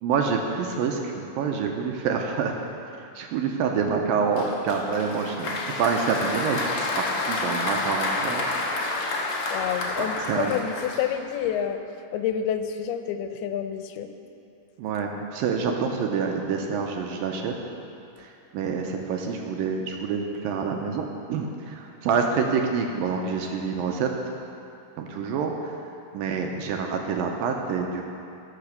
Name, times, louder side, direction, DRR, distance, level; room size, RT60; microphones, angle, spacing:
voice 1, 0.0-2.6 3.2-5.5 5.8-8.4 10.0-10.5 14.8-17.5 18.2-24.1 25.0-25.8 26.1-28.1, right 5 dB, 75° right, 2 dB, 2.2 m, -27 dB
Applause, 4.4-11.5, left 2 dB, 60° left, 1.6 m, -29 dB
voice 2, 9.5-11.8 12.1-14.1, left 9 dB, 85° left, 8 dB, 2.6 m, -28 dB
17.0 x 5.9 x 6.7 m, 2.7 s
omnidirectional pair, 4.5 m